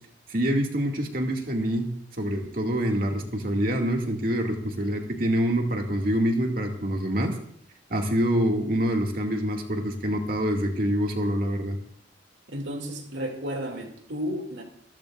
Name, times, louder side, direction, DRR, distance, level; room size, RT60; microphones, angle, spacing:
voice 1, 0.3-1.9 2.2-7.4 7.9-11.8, equal, 50° right, 2.3 m, -26 dB
voice 2, 12.5-14.6, equal, 70° right, 2.7 m, -33 dB
26.5 x 14.0 x 2.6 m
head